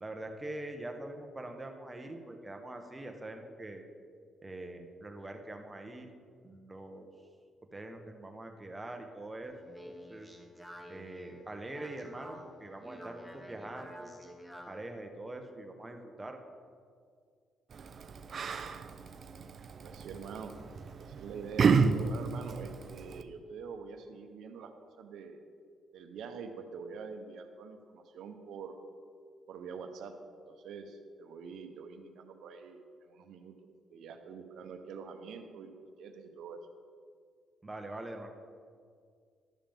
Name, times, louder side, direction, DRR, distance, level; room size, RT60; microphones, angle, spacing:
voice 1, 0.0-3.8 4.4-6.1 6.4-7.1 7.7-10.3 10.9-14.3 14.7-16.4 37.6-38.3, right 1 dB, 15° right, 4 dB, 1.0 m, -44 dB
Speech, 9.4-14.9, equal, 5° left, 1.2 m, -50 dB
Yell, 17.7-23.2, right 5 dB, 50° right, 0.5 m, -32 dB
voice 2, 19.8-20.5 21.0-24.7 25.0-25.4 25.9-28.8 29.5-30.1 30.5-33.5 33.9-36.6, right 5 dB, 75° right, 6 dB, 0.9 m, -45 dB
12.0 x 7.3 x 3.6 m, 2.2 s
cardioid pair, 90°, 0 cm